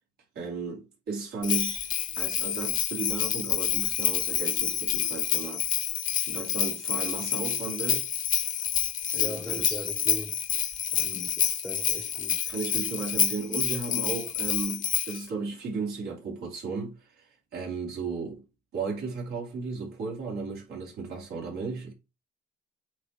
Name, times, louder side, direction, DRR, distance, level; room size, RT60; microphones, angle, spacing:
voice 1, 0.3-1.9 2.2-5.7 6.3-8.1 9.1-9.9 12.5-18.4 18.7-21.9, right 4 dB, 70° right, 2.8 m, -35 dB
Bell, 1.4-15.2, left 10 dB, 50° left, 0.7 m, -28 dB
voice 2, 9.2-10.6 10.9-12.5, left 1 dB, 5° left, 0.7 m, -40 dB
8.2 x 2.9 x 4.3 m
cardioid pair, 110°, 17 cm